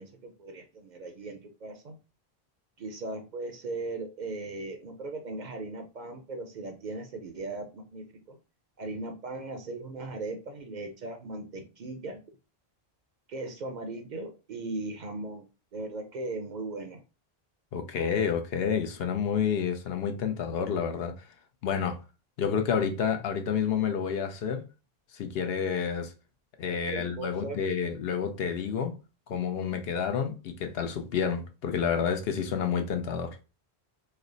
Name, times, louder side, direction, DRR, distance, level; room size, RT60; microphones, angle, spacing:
voice 1, 0.0-2.0 2.8-8.4 8.8-12.2 13.3-15.4 15.7-17.0 26.7-27.6, right 2 dB, 55° right, 0.6 m, -38 dB
voice 2, 17.7-21.2 21.6-22.0 22.4-24.7 25.1-26.1 26.6-28.9 29.3-33.4, left 7 dB, 75° left, 0.8 m, -29 dB
3.2 x 2.0 x 3.7 m
omnidirectional pair, 1.0 m